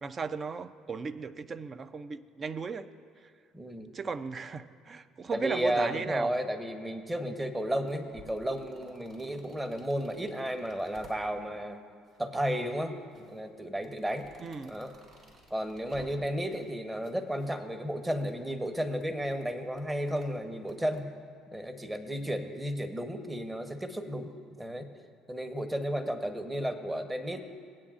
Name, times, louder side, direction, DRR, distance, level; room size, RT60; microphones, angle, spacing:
voice 1, 0.0-2.9 3.9-6.3 14.4-14.8, right 4 dB, 40° right, 12 dB, 0.5 m, -36 dB
voice 2, 3.5-3.9 5.3-11.8 12.2-14.3 14.6-14.9 15.5-21.1 21.5-24.3 24.6-24.9 25.3-27.4, equal, 15° right, 7 dB, 1.0 m, -33 dB
sound 1, 7.6-11.6 12.0-12.8 13.1-16.7 17.0-21.0, right 2 dB, 55° right, 2.3 m, -57 dB
18.5 x 8.7 x 2.5 m, 2.1 s
hypercardioid pair, 70°, 0 cm